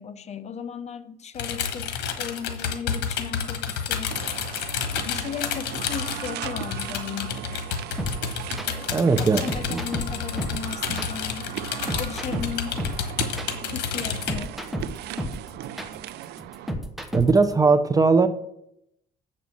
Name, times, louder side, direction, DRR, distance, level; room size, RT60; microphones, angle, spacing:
voice 1, 0.0-4.1 5.0-7.4 8.7-11.5 11.9-12.8 13.6-14.6 15.2-15.3, left 7 dB, 40° left, 0.8 m, -36 dB
sound 1, 1.4-14.3, left 7 dB, 85° left, 1.3 m, -30 dB
sound 2, 4.1-16.7, right 12 dB, 75° right, 0.5 m, -38 dB
sound 3, 8.0-17.5, equal, ahead, 1.2 m, -32 dB
voice 2, 8.9-9.4 9.7-9.8 17.1-18.3, right 4 dB, 20° right, 0.6 m, -19 dB
7.3 x 5.4 x 7.5 m
cardioid pair, 110°, 17 cm